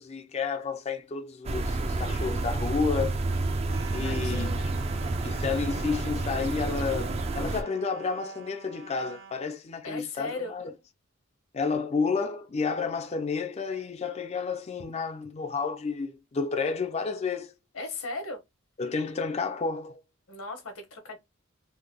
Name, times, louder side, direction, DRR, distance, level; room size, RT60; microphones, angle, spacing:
voice 1, 0.0-3.2 3.9-4.6 5.2-10.7 11.5-17.5 18.8-20.0, left 4 dB, 30° left, 0.4 m, -31 dB
sound 1, 1.4-7.6, right 2 dB, 30° right, 0.4 m, -29 dB
sound 2, 3.7-9.5, right 6 dB, 70° right, 0.9 m, -48 dB
voice 2, 4.0-4.7 9.8-10.5 17.7-18.4 20.3-21.2, left 3 dB, 80° left, 1.1 m, -37 dB
3.4 x 2.1 x 3.5 m
head